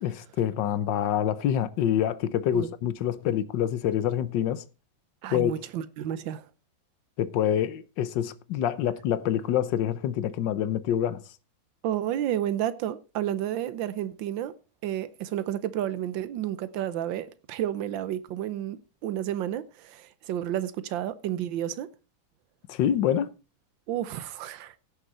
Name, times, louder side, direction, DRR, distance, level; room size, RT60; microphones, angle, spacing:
voice 1, 0.0-4.6 5.3-5.6 7.2-11.2 22.7-23.3, left 10 dB, 70° left, 1.4 m, -26 dB
voice 2, 5.2-6.4 11.8-14.5 14.8-21.9 23.9-24.7, right 11 dB, 75° right, 1.5 m, -31 dB
16.5 x 6.6 x 4.1 m
omnidirectional pair, 2.2 m